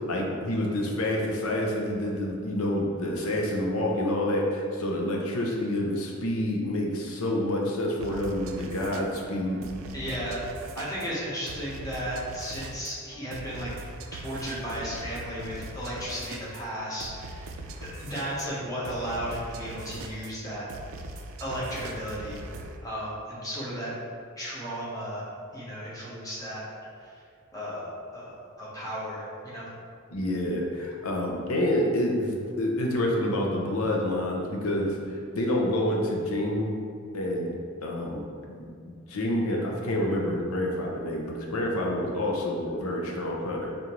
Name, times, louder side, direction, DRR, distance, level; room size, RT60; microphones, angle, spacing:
voice 1, 0.1-9.6 30.1-36.8 37.1-37.5 37.8-38.7 39.1-43.8, left 1 dB, 90° left, -1 dB, 0.7 m, -28 dB
sound 1, 8.0-22.8, right 2 dB, 70° right, 0.3 m, -41 dB
voice 2, 9.9-10.4 10.7-13.7 14.1-17.6 17.8-20.6 21.4-22.4 22.8-23.9 24.4-25.2 25.5-26.6 27.5-29.6, equal, 15° left, -8 dB, 0.9 m, -34 dB
5.0 x 2.5 x 2.9 m, 2.2 s
head